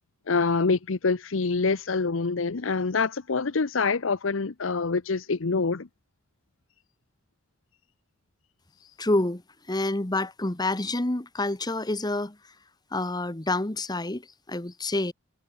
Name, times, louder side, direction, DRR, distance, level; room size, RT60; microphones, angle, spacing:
voice 1, 0.3-5.9, left 4 dB, 80° left, 0.8 m, -26 dB
voice 2, 9.0-9.4 9.7-12.5 12.9-15.1, left 2 dB, 20° left, 1.2 m, -28 dB
head